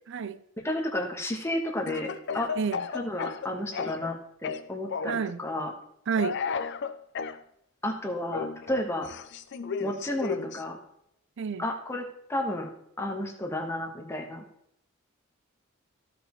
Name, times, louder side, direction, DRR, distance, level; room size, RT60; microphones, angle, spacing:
voice 1, 0.1-0.4 2.6-2.8 5.0-5.4 6.1-6.4 11.4-11.6, right 6 dB, 60° right, 0.5 m, -29 dB
voice 2, 0.6-2.5 2.9-4.2 4.4-5.7 7.8-9.1 9.8-10.8 11.6-12.7 13.0-14.4, left 1 dB, 15° left, 1.4 m, -32 dB
Speech / Cough, 1.9-4.1 4.4-5.3 6.2-7.4 8.3-10.6, left 5 dB, 55° left, 0.5 m, -34 dB
15.0 x 5.3 x 3.2 m
head